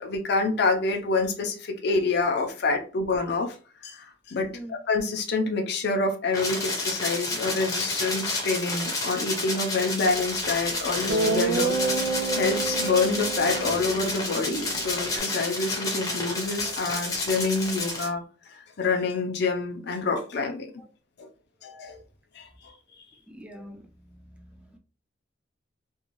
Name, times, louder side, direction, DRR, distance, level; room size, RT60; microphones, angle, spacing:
voice 1, 0.0-3.6 3.8-11.7 12.4-20.7 21.2-21.3 21.6-22.0 22.3-22.5, left 3 dB, 60° left, 2 dB, 0.5 m, -27 dB
sound 1, 6.3-18.1, left 2 dB, 20° left, 0.7 m, -30 dB
Guitar, 10.5-10.6 11.1-15.2, right 3 dB, 75° right, 0.4 m, -29 dB
voice 2, 23.3-24.8, right 1 dB, 5° right, 4 dB, 0.4 m, -45 dB
2.6 x 2.2 x 3.0 m, 0.38 s
head